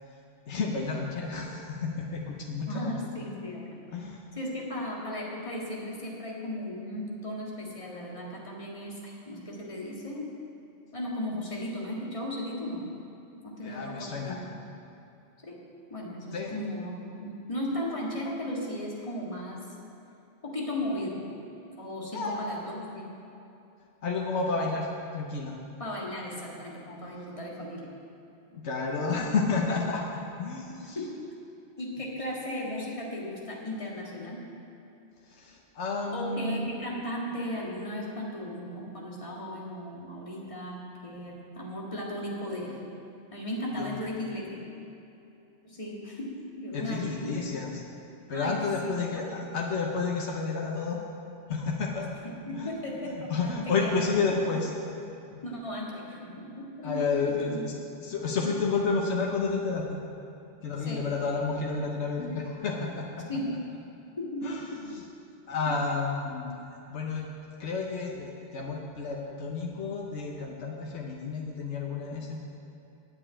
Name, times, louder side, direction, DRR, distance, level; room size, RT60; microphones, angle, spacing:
voice 1, 0.5-2.9 3.9-4.3 13.6-14.4 16.3-16.5 22.1-22.4 24.0-24.9 25.1-25.6 28.5-31.0 35.3-36.7 43.8-43.9 46.7-47.8 48.3-51.0 51.5-52.1 52.5-52.7 53.3-54.7 55.3-55.4 56.8-60.0 60.6-63.2 64.4-65.0 65.5-66.6 66.9-67.3 67.6-72.4, left 4 dB, 80° left, -1 dB, 1.3 m, -31 dB
voice 2, 2.7-3.8 4.4-10.3 10.9-12.9 13.4-14.5 15.4-15.6 15.9-19.6 20.4-21.3 21.8-23.1 25.8-27.9 29.1-29.2 30.7-31.2 31.8-34.4 36.1-42.8 43.3-44.7 45.6-47.4 48.3-49.5 52.2-54.3 55.4-57.7 60.8-61.1 63.3-63.6 64.2-65.0 65.7-65.8, left 1 dB, 30° left, -4 dB, 1.9 m, -36 dB
9.0 x 7.4 x 8.7 m, 2.8 s
omnidirectional pair, 1.2 m